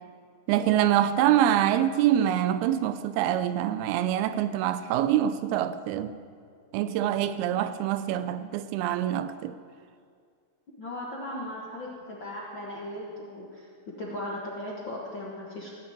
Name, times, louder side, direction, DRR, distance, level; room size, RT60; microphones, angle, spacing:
voice 1, 0.5-6.2 6.7-9.6, right 11 dB, 90° right, 2.6 m, -25 dB
voice 2, 10.8-13.7 14.0-15.7, left 1 dB, 55° left, 1.3 m, -37 dB
16.5 x 6.8 x 9.0 m
omnidirectional pair, 4.4 m